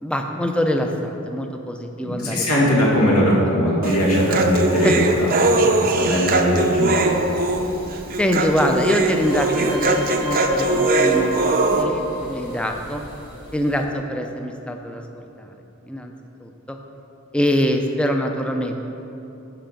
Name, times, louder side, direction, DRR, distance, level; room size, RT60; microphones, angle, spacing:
voice 1, 0.0-2.7 3.0-3.3 3.7-3.9 4.8-4.9 5.8-6.0 8.2-13.0 13.5-15.5 15.9-16.1 16.4-16.8 17.3-18.8, equal, 5° left, 4 dB, 0.4 m, -24 dB
voice 2, 2.0-4.9 5.2-7.1, equal, 90° left, -4 dB, 2.0 m, -20 dB
Human voice, 3.8-11.8, right 2 dB, 40° right, 0.6 m, -21 dB
sound 1, 7.1-13.8, left 2 dB, 45° left, 1.9 m, -31 dB
11.5 x 4.7 x 5.2 m, 3.0 s
head